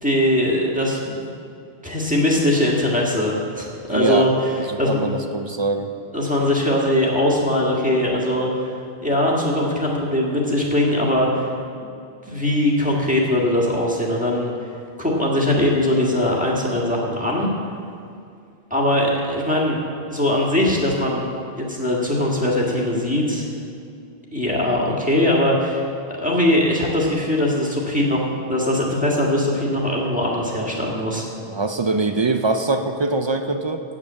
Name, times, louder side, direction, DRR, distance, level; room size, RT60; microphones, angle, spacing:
voice 1, 0.0-1.3 1.8-4.3 4.8-5.1 6.1-8.7 9.0-11.5 12.3-14.5 15.0-17.5 18.7-19.8 20.1-21.3 21.6-23.5 24.3-31.3, left 1 dB, 5° right, -4 dB, 1.7 m, -21 dB
voice 2, 3.9-4.3 4.6-5.9 31.5-33.8, right 3 dB, 45° right, 7 dB, 0.3 m, -23 dB
8.6 x 8.5 x 7.5 m, 2.4 s
omnidirectional pair, 1.1 m